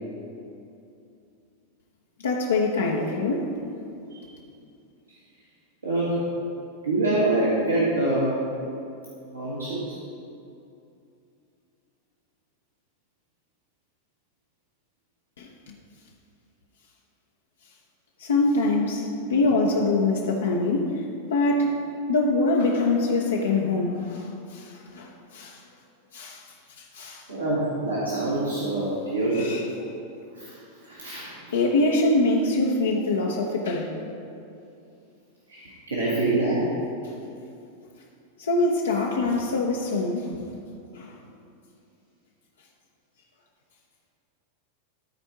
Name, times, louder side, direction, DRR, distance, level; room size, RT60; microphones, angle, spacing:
voice 1, 2.2-3.5 15.4-15.7 18.2-21.8 22.1-25.6 26.1-26.4 26.8-27.3 29.3-29.7 31.5-34.0 38.4-40.4 40.9-41.2, left 2 dB, 65° left, -1 dB, 0.8 m, -24 dB
voice 2, 5.8-6.3 6.8-8.4 9.3-10.0 27.3-29.6 30.3-31.3 35.5-36.7, right 2 dB, 75° right, -8 dB, 1.7 m, -25 dB
13.0 x 4.4 x 4.7 m, 2.6 s
figure-of-eight pair, 90°, 0 cm